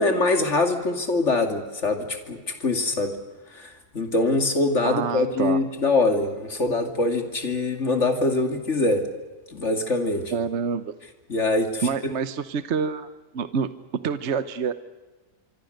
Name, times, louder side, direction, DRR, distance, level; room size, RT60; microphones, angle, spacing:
voice 1, 0.0-3.1 3.5-9.0 9.5-10.3 11.3-11.8, left 2 dB, 50° left, 6 dB, 2.7 m, -23 dB
voice 2, 4.8-5.6 10.3-10.9 11.8-13.1 13.3-13.7 14.0-14.7, right 6 dB, 50° right, 12 dB, 1.1 m, -27 dB
25.5 x 25.0 x 6.6 m, 1.3 s
omnidirectional pair, 1.6 m